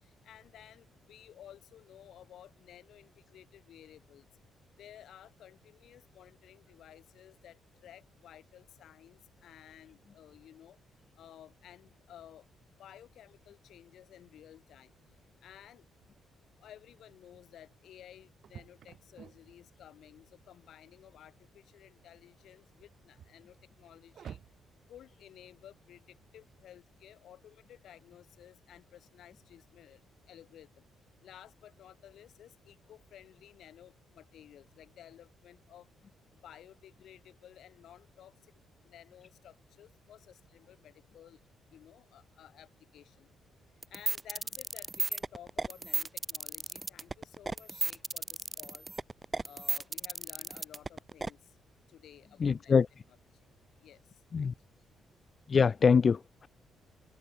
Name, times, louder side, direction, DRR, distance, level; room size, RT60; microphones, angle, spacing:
voice 1, 0.0-4.3 4.8-10.8 11.2-12.5 12.8-14.9 15.4-15.8 16.6-24.4 24.9-30.0 30.3-30.8 31.2-35.9 36.4-38.3 38.8-41.4 41.7-43.3 43.9-48.9 49.4-51.5 51.9-53.2 53.8-54.0 54.4-54.5, left 11 dB, 65° left, 4.4 m, -55 dB
sound 1, 17.0-26.7, right 8 dB, 50° right, 7.9 m, -56 dB
sound 2, 43.8-51.3, right 3 dB, 15° right, 1.0 m, -34 dB
voice 2, 52.4-52.9 54.3-54.5 55.5-56.5, left 5 dB, 30° left, 0.4 m, -24 dB
open air
cardioid pair, 160°, 0 cm